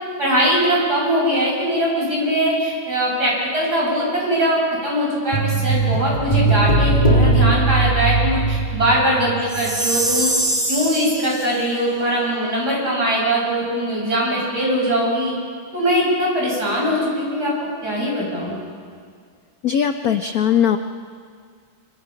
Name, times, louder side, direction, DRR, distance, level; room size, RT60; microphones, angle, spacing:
voice 1, 0.2-10.3 10.7-15.3 15.7-17.5 17.8-18.6, equal, 50° right, -3 dB, 7.7 m, -21 dB
sound 1, 5.3-9.8 10.0-10.1, right 3 dB, 20° left, 1.8 m, -19 dB
Chime, 9.5-11.5, right 1 dB, 90° right, 7.3 m, -23 dB
voice 2, 19.6-20.8, left 9 dB, 65° left, 8 dB, 0.9 m, -19 dB
25.5 x 25.0 x 5.8 m, 2.1 s
omnidirectional pair, 2.3 m